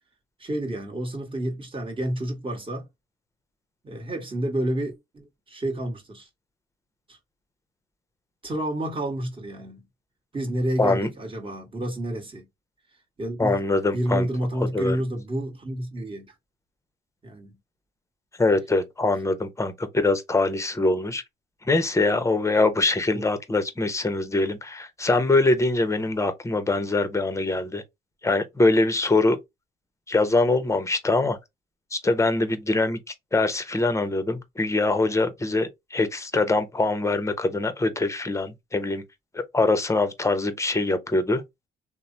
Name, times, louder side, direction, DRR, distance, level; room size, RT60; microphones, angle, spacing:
voice 1, 0.4-2.9 3.8-6.3 7.1-7.2 8.4-9.8 10.3-12.5 13.2-13.6 13.9-16.2 17.2-17.5 23.1-23.2, right 1 dB, 25° right, 1.2 m, -29 dB
voice 2, 10.8-11.1 13.4-14.3 14.7-15.0 18.4-21.2 21.6-27.8 28.2-29.4 30.1-31.4 31.9-39.0 39.3-41.4, left 2 dB, 15° left, 0.6 m, -23 dB
3.0 x 2.0 x 2.5 m
cardioid pair, 90°, 20 cm